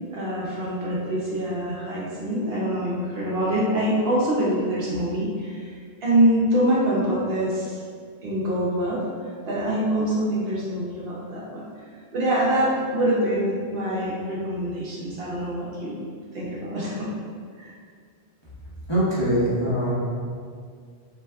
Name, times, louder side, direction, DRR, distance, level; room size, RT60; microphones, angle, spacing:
voice 1, 0.1-5.7 6.0-7.8 8.2-9.0 9.5-11.7 12.1-16.0 16.3-17.1 17.6-17.7, right 1 dB, 65° right, -5 dB, 0.8 m, -25 dB
voice 2, 18.9-20.0, equal, 25° left, -12 dB, 0.8 m, -22 dB
2.5 x 2.2 x 3.3 m, 2.1 s
omnidirectional pair, 1.1 m